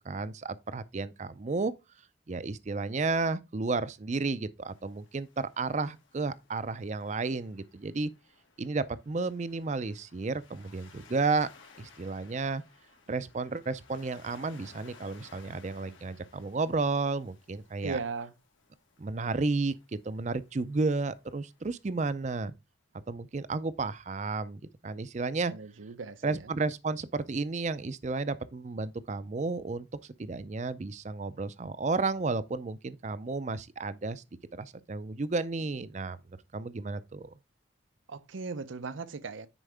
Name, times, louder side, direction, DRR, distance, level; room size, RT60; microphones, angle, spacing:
voice 1, 0.1-1.7 2.3-8.1 8.6-11.5 11.8-12.6 13.1-18.0 19.0-19.7 20.0-22.5 23.1-25.5 26.2-34.2 34.5-36.2 36.5-37.3, right 3 dB, 35° right, 0.4 m, -32 dB
Waves surf, 4.7-22.5, left 4 dB, 85° left, 1.8 m, -59 dB
voice 2, 17.8-18.3 25.5-26.5 38.1-39.5, right 4 dB, 80° right, 0.6 m, -38 dB
9.9 x 4.6 x 3.4 m
head